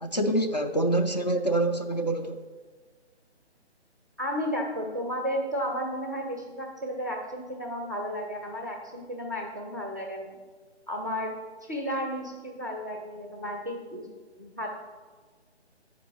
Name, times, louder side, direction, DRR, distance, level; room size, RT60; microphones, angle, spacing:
voice 1, 0.0-2.4, right 1 dB, 40° left, 5 dB, 0.4 m, -26 dB
voice 2, 4.2-10.3 10.9-11.3 11.6-14.1 14.4-14.7, equal, 15° right, 1 dB, 0.5 m, -33 dB
7.0 x 5.1 x 5.7 m, 1.4 s
figure-of-eight pair, 160°, 34 cm